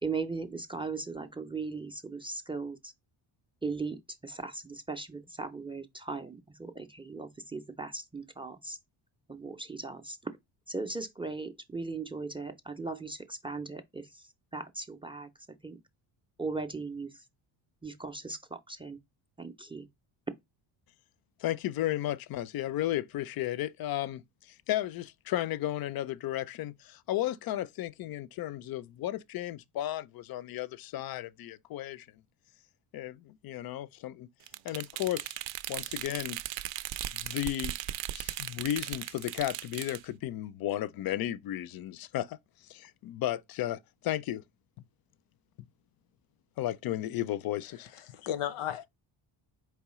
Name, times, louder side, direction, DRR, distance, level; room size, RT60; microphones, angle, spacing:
voice 1, 0.0-2.9 3.6-8.8 9.3-10.2 10.7-15.8 16.4-17.2 17.8-19.0 19.4-19.9, right 3 dB, 10° right, 0.4 m, -38 dB
voice 2, 21.4-24.2 24.7-32.1 32.9-34.3 34.6-35.4 35.7-36.4 37.1-37.7 38.1-42.4 42.7-44.4 46.6-47.9, left 13 dB, 50° left, 0.5 m, -34 dB
sound 1, 34.5-40.0, right 13 dB, 65° right, 0.5 m, -37 dB
voice 3, 47.8-48.9, left 11 dB, 90° left, 0.8 m, -35 dB
4.7 x 3.1 x 3.0 m
cardioid pair, 95°, 49 cm